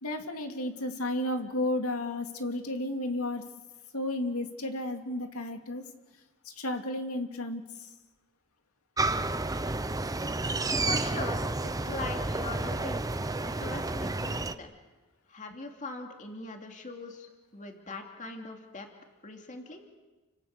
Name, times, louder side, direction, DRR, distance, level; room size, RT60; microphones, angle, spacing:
voice 1, 0.0-3.4 3.9-5.8 6.4-7.9, left 1 dB, 85° left, 5 dB, 2.6 m, -33 dB
sound 1, 9.0-14.5, right 2 dB, 15° right, 0.8 m, -30 dB
voice 2, 10.8-13.0 13.4-14.7 15.3-18.9 19.2-19.8, left 3 dB, 35° left, 3 dB, 2.6 m, -41 dB
30.0 x 25.0 x 6.7 m, 1.2 s
head